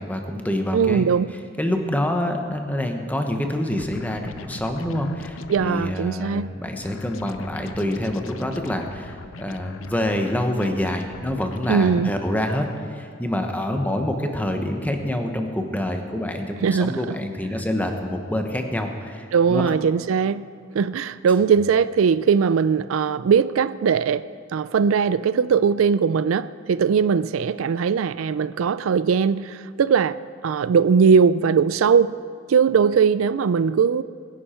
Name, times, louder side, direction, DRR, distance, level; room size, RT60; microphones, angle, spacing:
voice 1, 0.0-1.1 1.6-12.6 12.9-19.6, left 1 dB, 10° left, 1.1 m, -26 dB
voice 2, 0.7-1.3 5.5-6.5 11.7-12.2 16.6-17.0 19.3-20.4 20.7-32.2 32.5-34.0, right 6 dB, 90° right, 0.4 m, -20 dB
sound 1, 3.8-6.0 6.8-11.8, left 4 dB, 75° left, 0.6 m, -41 dB
22.0 x 10.0 x 4.4 m
head